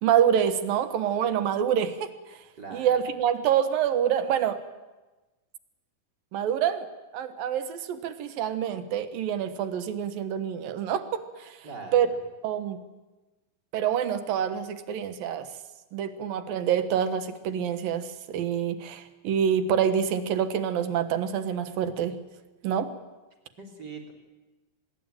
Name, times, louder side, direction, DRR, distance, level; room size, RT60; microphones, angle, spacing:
voice 1, 0.0-2.4 2.7-4.6 6.3-6.9 7.1-11.6 11.9-12.1 12.4-12.8 13.7-15.5 15.9-22.2 22.6-22.9, right 9 dB, 75° right, 11 dB, 3.1 m, -26 dB
voice 2, 2.6-3.0 11.6-12.0 23.6-24.1, right 4 dB, 30° right, 2 dB, 3.9 m, -41 dB
25.0 x 21.0 x 9.0 m, 1.1 s
omnidirectional pair, 4.1 m